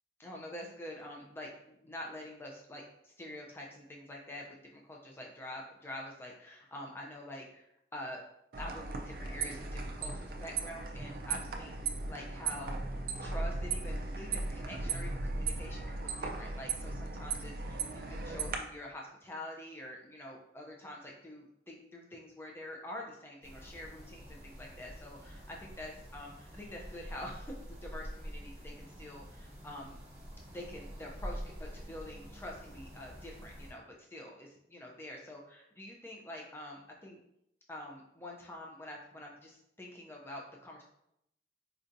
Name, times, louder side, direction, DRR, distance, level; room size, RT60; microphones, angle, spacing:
voice 1, 0.2-8.2 8.6-13.0 13.2-30.0 30.5-37.2 37.7-40.8, left 1 dB, 15° left, -1 dB, 0.4 m, -46 dB
sound 1, 8.5-18.6, right 3 dB, 55° right, 0.4 m, -37 dB
sound 2, 23.4-33.7, equal, 35° right, 1.1 m, -47 dB
4.4 x 2.6 x 2.6 m, 0.77 s
head